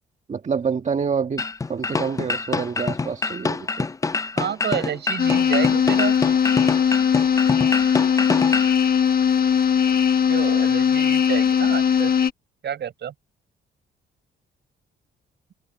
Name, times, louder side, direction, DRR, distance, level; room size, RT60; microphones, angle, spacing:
voice 1, 0.3-1.4 1.7-3.9, right 6 dB, 35° right, 1.5 m, -27 dB
sound 1, 1.4-8.7, left 4 dB, 15° left, 0.4 m, -26 dB
voice 2, 4.4-6.2 10.3-12.1 12.6-13.1, right 9 dB, 60° right, 5.8 m, -29 dB
sound 2, 5.2-12.3, left 7 dB, 50° left, 1.0 m, -19 dB
cardioid pair, 90°, 20 cm